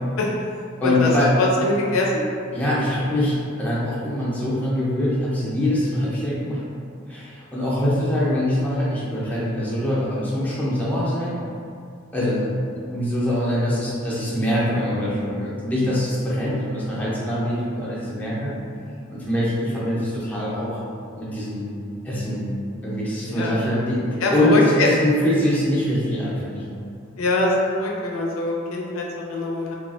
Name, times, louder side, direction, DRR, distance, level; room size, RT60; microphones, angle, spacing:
voice 1, 0.8-1.3 2.5-6.6 7.1-11.4 12.1-12.5 12.9-18.5 19.1-20.8 21.2-21.7 22.0-22.5 22.8-26.6, left 1 dB, 10° left, -8 dB, 0.5 m, -23 dB
voice 2, 1.4-2.2 23.3-23.6 24.2-24.9 27.2-29.7, left 2 dB, 85° left, -2 dB, 0.5 m, -23 dB
3.1 x 2.3 x 2.4 m, 2.3 s
head